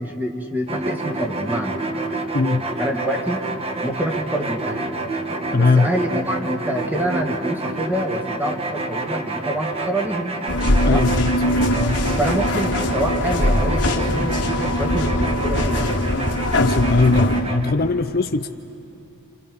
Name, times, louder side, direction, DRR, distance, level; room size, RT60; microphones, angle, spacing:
voice 1, 0.0-1.8 2.8-3.4 3.8-4.8 5.6-10.4 10.9-11.1 12.2-16.0, right 1 dB, 10° right, 1 dB, 1.9 m, -26 dB
sound 1, 0.7-17.7, right 2 dB, 25° right, 1.3 m, -28 dB
voice 2, 2.3-2.6 5.5-5.9 10.8-11.3 11.8-12.0 16.6-18.5, left 3 dB, 45° left, 8 dB, 0.6 m, -20 dB
sound 2, 10.5-17.4, left 1 dB, 85° left, 2.4 m, -21 dB
29.0 x 28.5 x 5.3 m, 2.9 s
head